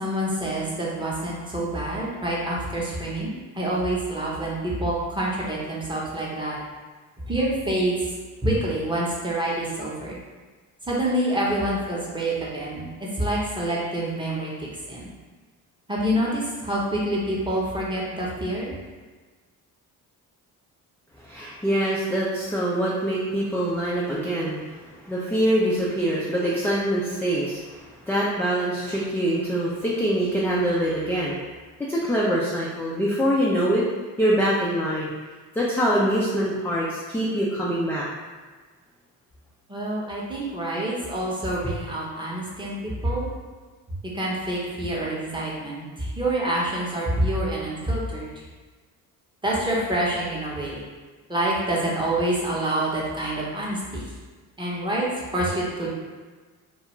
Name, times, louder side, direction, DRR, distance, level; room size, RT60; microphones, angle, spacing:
voice 1, 0.0-6.6 7.3-8.0 8.4-10.2 10.8-15.1 15.9-18.8 39.7-43.3 44.1-48.3 49.4-50.8 51.3-54.0 54.6-55.9, right 1 dB, 15° right, -5 dB, 0.7 m, -27 dB
voice 2, 21.2-31.4 31.9-33.8 34.2-35.1 35.6-38.0, equal, 5° left, -6 dB, 0.3 m, -24 dB
2.4 x 2.3 x 2.9 m, 1.4 s
cardioid pair, 90°, 37 cm